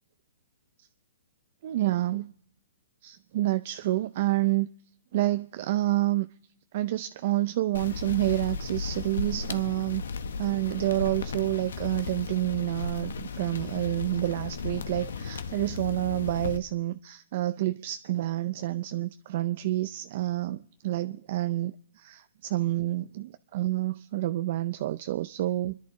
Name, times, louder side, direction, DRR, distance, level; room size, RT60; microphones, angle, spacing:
voice 1, 1.6-2.3 3.0-4.7 5.1-6.3 6.7-10.0 10.4-25.8, right 15 dB, 50° right, 0.5 m, -28 dB
sound 1, 7.7-16.6, left 5 dB, 75° left, 1.0 m, -35 dB
29.0 x 11.0 x 3.1 m
hypercardioid pair, 140°, 0 cm